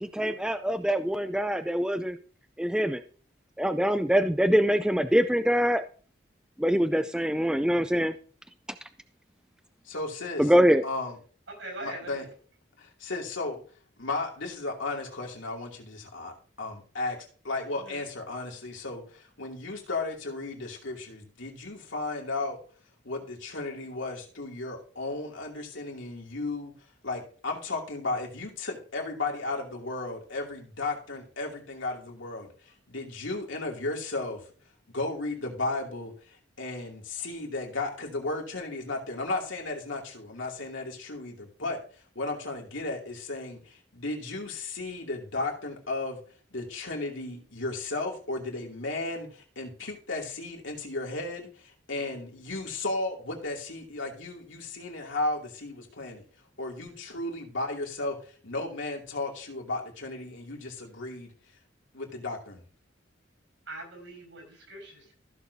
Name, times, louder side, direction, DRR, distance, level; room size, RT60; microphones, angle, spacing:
voice 1, 0.0-2.2 2.6-3.0 3.6-5.8 6.6-8.1 10.4-10.8, equal, 5° right, 9 dB, 0.3 m, -24 dB
voice 2, 9.9-10.5 10.8-11.2 11.8-12.3 12.8-13.6 14.0-22.6 23.0-26.7 27.0-32.5 32.9-34.4 34.9-41.8 42.1-46.2 46.5-56.2 56.6-61.3 61.9-62.6, left 2 dB, 85° left, 0 dB, 2.6 m, -34 dB
voice 3, 11.6-12.2 17.9-18.0 63.7-65.1, right 1 dB, 80° right, 2 dB, 5.4 m, -41 dB
15.0 x 6.4 x 2.7 m, 0.42 s
head